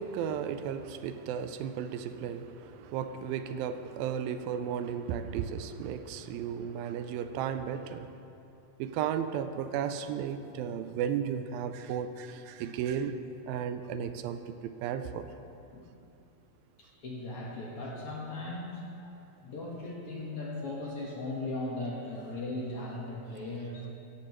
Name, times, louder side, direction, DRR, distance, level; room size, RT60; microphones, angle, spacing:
voice 1, 0.0-8.2 8.8-13.2 13.5-14.5 14.8-15.3, right 8 dB, 85° right, 10 dB, 2.4 m, -34 dB
voice 2, 16.8-18.8 19.4-23.9, left 2 dB, 55° left, -4 dB, 1.8 m, -38 dB
16.0 x 14.5 x 3.1 m, 2.8 s
omnidirectional pair, 4.1 m